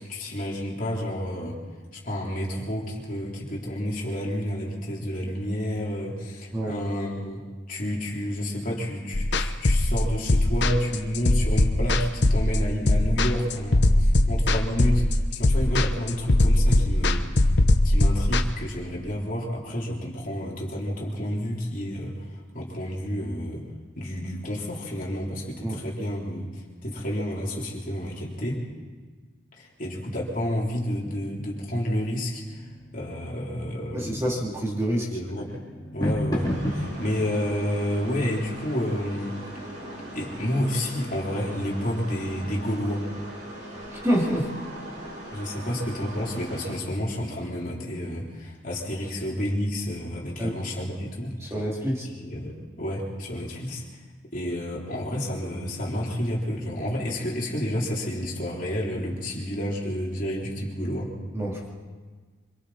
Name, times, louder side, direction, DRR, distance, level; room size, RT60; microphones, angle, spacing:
voice 1, 0.0-1.6 1.9-7.4 7.7-17.3 17.8-23.7 24.0-28.6 29.6-32.7 32.9-34.3 35.1-35.6 35.9-39.4 40.1-43.1 45.3-51.5 52.1-53.8 54.3-61.1, equal, 45° left, -3 dB, 3.6 m, -30 dB
voice 2, 6.5-6.9 25.6-25.8 33.9-35.1 43.9-44.5 50.4-50.6 51.4-52.1 61.3-61.7, equal, 15° right, -5 dB, 2.9 m, -27 dB
sound 1, 9.1-18.4, left 1 dB, 60° left, 1.0 m, -20 dB
sound 2, 31.5-42.3, equal, 20° left, 3.2 m, -36 dB
sound 3, 36.4-46.7, right 1 dB, 55° right, 7.3 m, -40 dB
26.0 x 24.0 x 4.3 m, 1.5 s
head